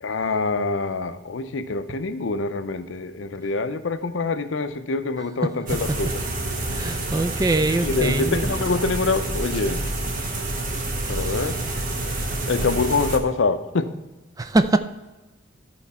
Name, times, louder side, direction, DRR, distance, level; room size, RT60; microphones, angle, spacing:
voice 1, 0.0-6.2 7.7-9.8 11.1-11.6 12.5-13.9, left 3 dB, 75° left, 10 dB, 0.6 m, -25 dB
sound 1, 5.7-13.2, right 2 dB, 45° right, 1.1 m, -28 dB
voice 2, 6.7-8.6 11.1-11.3 14.4-14.8, right 2 dB, 20° right, 9 dB, 0.4 m, -23 dB
13.5 x 4.6 x 4.2 m, 1.1 s
head